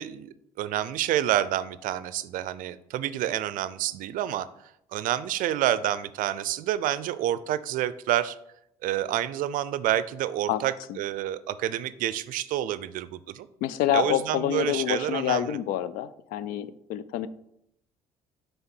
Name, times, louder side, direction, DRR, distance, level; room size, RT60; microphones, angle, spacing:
voice 1, 0.0-4.5 4.9-8.4 8.8-13.5 13.9-15.6, right 12 dB, 65° right, 15 dB, 0.4 m, -28 dB
voice 2, 13.6-17.3, left 11 dB, 80° left, 15 dB, 0.4 m, -27 dB
6.9 x 3.4 x 4.4 m, 0.76 s
supercardioid pair, 75°, 15 cm